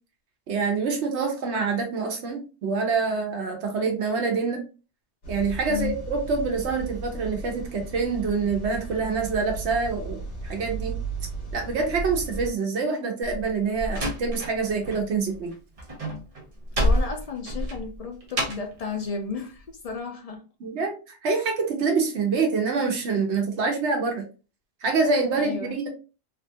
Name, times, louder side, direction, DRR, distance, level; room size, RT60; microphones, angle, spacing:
voice 1, 0.5-4.6 5.3-11.0 11.5-15.5 20.6-24.2 24.8-25.9, right 4 dB, 80° right, 1.0 m, -26 dB
sound 1, 5.2-12.5, right 3 dB, 85° left, 1.4 m, -35 dB
voice 2, 5.7-6.0 16.8-20.5 25.3-25.8, left 5 dB, 65° left, 0.3 m, -33 dB
Slam, 13.2-15.0 15.3-18.8, equal, 35° right, 0.8 m, -28 dB
3.4 x 2.4 x 2.7 m
omnidirectional pair, 1.1 m